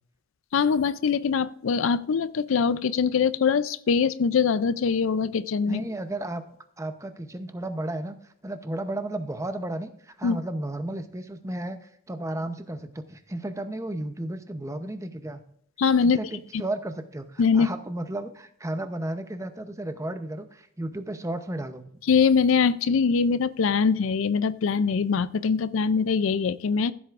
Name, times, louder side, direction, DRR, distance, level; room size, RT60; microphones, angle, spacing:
voice 1, 0.5-5.8 10.2-10.4 15.8-16.2 17.4-17.7 22.1-26.9, left 5 dB, 65° left, 16 dB, 0.4 m, -23 dB
voice 2, 5.7-6.4 6.8-15.4 16.0-21.8, right 1 dB, 15° right, 9 dB, 0.7 m, -33 dB
15.0 x 7.9 x 2.5 m, 0.65 s
head